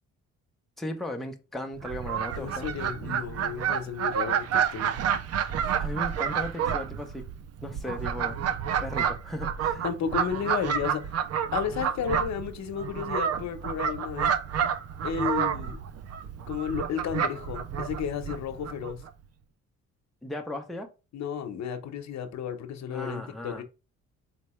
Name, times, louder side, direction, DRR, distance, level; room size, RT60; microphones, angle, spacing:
voice 1, 0.8-2.7 5.8-7.2 7.6-8.4 8.8-9.8 20.2-20.9 22.9-23.6, left 1 dB, ahead, 0.7 m, -36 dB
Fowl, 1.8-19.1, right 8 dB, 55° right, 0.5 m, -30 dB
voice 2, 2.4-4.9 9.8-11.1 11.5-14.3 15.0-15.8 16.5-19.0 21.1-23.6, left 7 dB, 65° left, 0.9 m, -33 dB
4.2 x 3.3 x 3.1 m
cardioid pair, 90°, 30 cm